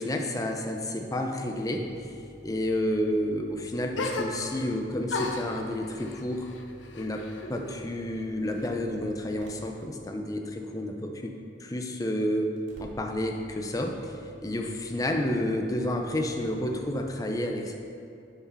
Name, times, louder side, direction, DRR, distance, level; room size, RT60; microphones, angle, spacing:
voice 1, 0.0-1.8 2.4-6.5 6.9-7.2 7.5-11.3 11.6-12.5 12.8-17.7, left 1 dB, 20° left, 3 dB, 0.6 m, -30 dB
sound 1, 1.4-9.7 12.6-17.2, equal, 80° right, 2.0 m, -51 dB
sound 2, 3.9-4.8 5.1-7.8 8.1-9.0, left 2 dB, 85° left, 0.7 m, -36 dB
8.4 x 4.9 x 5.5 m, 2.8 s
head